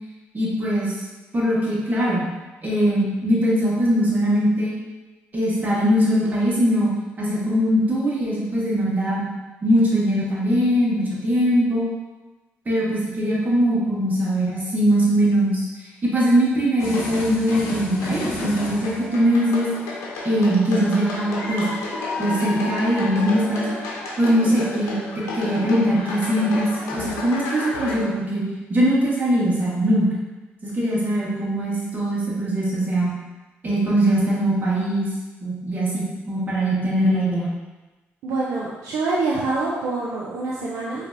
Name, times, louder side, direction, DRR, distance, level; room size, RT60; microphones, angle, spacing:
voice 1, 0.3-0.9 1.3-2.2 2.6-4.7 5.3-6.9 7.2-9.3 9.6-11.9 12.6-15.7 16.0-19.7 20.2-21.7 22.2-23.7 24.2-28.4 28.7-30.1 30.6-33.1 33.6-35.1 35.4-37.5, equal, 35° right, -6 dB, 1.5 m, -21 dB
sound 1, 16.8-28.0, left 2 dB, 85° left, 0.7 m, -31 dB
voice 2, 38.2-41.1, right 3 dB, 80° right, -5 dB, 0.5 m, -25 dB
4.4 x 2.8 x 2.6 m, 1.2 s
supercardioid pair, 70°, 5 cm